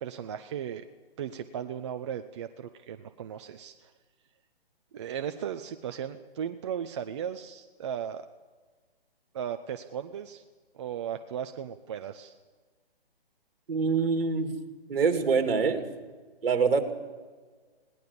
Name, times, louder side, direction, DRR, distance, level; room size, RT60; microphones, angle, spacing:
voice 1, 0.0-0.8 1.2-3.9 4.9-8.3 9.3-10.4 10.7-12.3, right 9 dB, 30° right, 8 dB, 0.6 m, -36 dB
voice 2, 13.7-14.5 14.9-15.9 16.4-16.9, right 5 dB, 65° right, 6 dB, 3.0 m, -25 dB
20.5 x 18.0 x 7.0 m, 1.4 s
hypercardioid pair, 150°, 31 cm